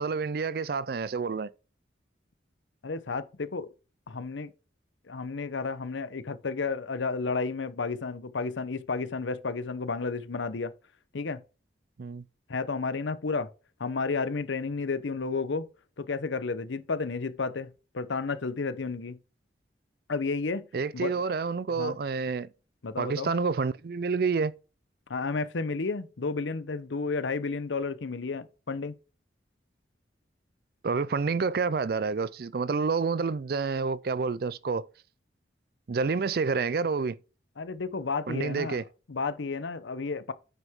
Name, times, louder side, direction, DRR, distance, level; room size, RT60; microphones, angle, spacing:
voice 1, 0.0-1.5 12.0-12.2 20.7-22.5 23.0-24.5 30.8-34.9 35.9-37.2 38.3-38.8, right 4 dB, 55° right, 0.4 m, -28 dB
voice 2, 2.8-3.7 4.1-4.5 5.1-10.7 11.1-11.4 12.5-13.5 13.8-15.6 16.0-17.7 17.9-19.2 20.1-20.7 20.9-21.2 21.8-22.0 22.8-23.3 25.1-28.9 37.6-38.8 39.1-40.3, left 4 dB, 85° left, 0.7 m, -32 dB
9.3 x 5.7 x 3.6 m
head